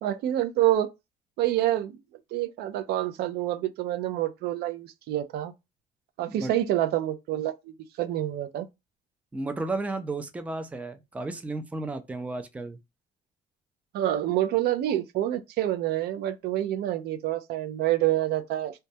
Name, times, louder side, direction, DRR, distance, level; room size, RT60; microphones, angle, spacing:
voice 1, 0.0-0.9 1.4-2.0 2.3-5.5 6.2-8.7 13.9-18.7, right 13 dB, 70° right, 0.4 m, -27 dB
voice 2, 9.3-12.8, right 2 dB, 10° right, 0.4 m, -33 dB
2.2 x 2.1 x 2.6 m
cardioid pair, 110°, 17 cm